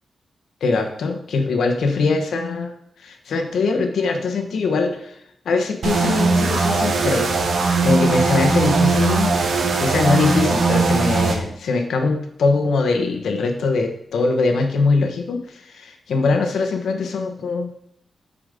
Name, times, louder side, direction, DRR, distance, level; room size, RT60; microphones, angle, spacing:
voice 1, 0.6-9.3 9.6-17.7, left 3 dB, 85° left, 5 dB, 1.3 m, -22 dB
sound 1, 5.8-11.4, right 4 dB, 80° right, 1.4 m, -19 dB
8.6 x 5.1 x 5.2 m, 0.72 s
cardioid pair, 100°, 0 cm